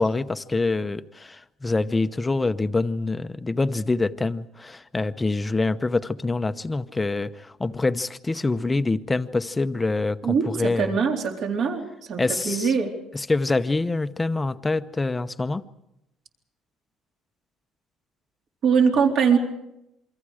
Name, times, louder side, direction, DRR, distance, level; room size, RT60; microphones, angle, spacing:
voice 1, 0.0-10.9 12.2-12.7 13.1-15.6, left 3 dB, 15° left, 12 dB, 0.8 m, -25 dB
voice 2, 10.2-11.8 12.1-12.9 18.6-19.4, right 6 dB, 55° right, 2 dB, 3.8 m, -22 dB
28.0 x 24.5 x 5.0 m, 0.84 s
cardioid pair, 130°, 0 cm